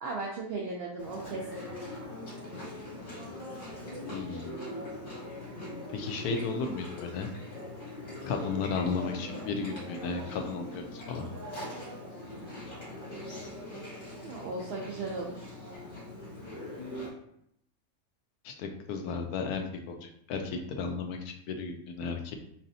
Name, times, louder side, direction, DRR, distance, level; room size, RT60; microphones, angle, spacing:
voice 1, 0.0-1.6 14.2-15.5, right 3 dB, 65° right, -1 dB, 0.6 m, -36 dB
Chewing mastication, 1.0-17.1, left 1 dB, 55° left, 1.9 m, -41 dB
voice 2, 4.1-4.5 5.9-7.3 8.2-11.3 18.4-22.4, left 4 dB, 80° left, 4 dB, 1.1 m, -34 dB
4.2 x 3.2 x 2.6 m, 0.73 s
omnidirectional pair, 1.6 m